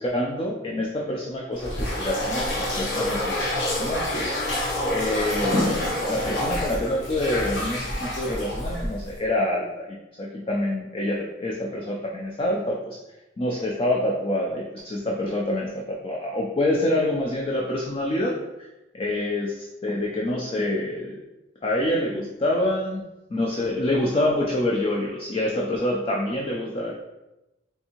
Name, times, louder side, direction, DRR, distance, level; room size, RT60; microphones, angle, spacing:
voice 1, 0.0-4.4 4.9-13.0 13.4-18.3 18.9-21.2 21.6-23.0 23.3-26.9, left 1 dB, 30° left, -2 dB, 0.4 m, -26 dB
sound 1, 1.6-9.2, left 1 dB, 70° left, 1.0 m, -28 dB
4.6 x 2.6 x 2.8 m, 0.99 s
head